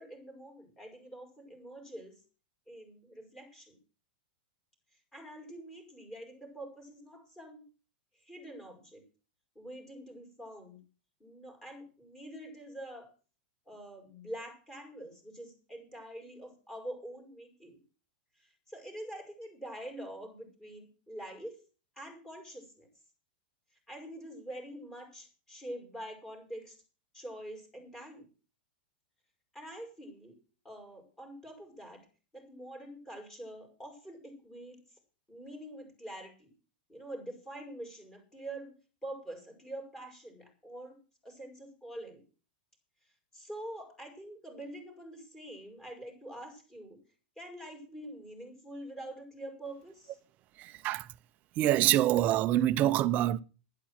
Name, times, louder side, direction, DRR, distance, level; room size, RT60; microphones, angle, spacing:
voice 1, 0.0-2.2 2.7-3.7 5.1-7.6 8.1-9.0 9.5-10.8 11.2-13.1 13.7-17.8 18.4-21.6 22.0-22.9 23.9-26.8 27.1-28.3 29.5-30.4 30.6-32.1 32.3-35.0 35.3-36.5 36.9-38.7 39.0-41.0 41.2-42.2 43.3-47.0 47.4-50.2, right 1 dB, 10° left, 6.1 m, -45 dB
voice 2, 50.6-51.1 51.6-53.4, right 13 dB, 30° right, 0.8 m, -26 dB
11.5 x 10.5 x 7.7 m
supercardioid pair, 160°, 5 cm